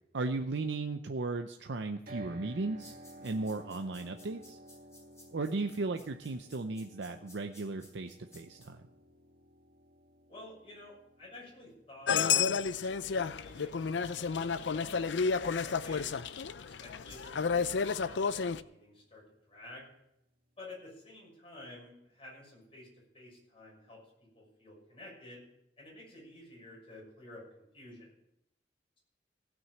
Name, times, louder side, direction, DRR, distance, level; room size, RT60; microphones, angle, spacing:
voice 1, 0.1-2.9 3.2-4.6 5.3-8.8, right 3 dB, 85° right, 6 dB, 0.6 m, -36 dB
sound 1, 2.1-16.2, right 1 dB, 55° right, 1.7 m, -55 dB
sound 2, 2.8-8.7, left 1 dB, 15° left, 4.6 m, -57 dB
voice 2, 10.3-16.1 16.6-19.9 20.6-25.4 25.8-28.1, left 2 dB, 35° left, -3 dB, 6.2 m, -52 dB
sound 3, 12.1-18.6, left 6 dB, 90° left, 0.5 m, -31 dB
16.0 x 6.2 x 7.5 m, 0.81 s
head